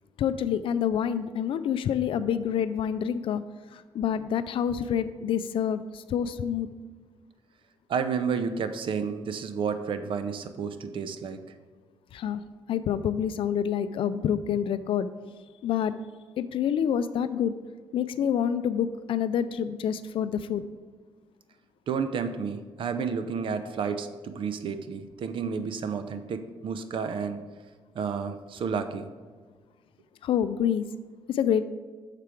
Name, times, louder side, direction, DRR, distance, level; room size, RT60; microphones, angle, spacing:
voice 1, 0.2-3.4 3.7-6.7 12.1-12.4 12.7-15.1 15.6-15.9 16.4-17.5 17.9-20.7 30.2-30.8 31.3-31.6, left 8 dB, 70° left, 13 dB, 0.4 m, -27 dB
voice 2, 7.9-11.4 21.9-27.4 27.9-29.1, right 6 dB, 65° right, 10 dB, 0.7 m, -31 dB
6.7 x 4.8 x 5.9 m, 1.5 s
cardioid pair, 85°, 9 cm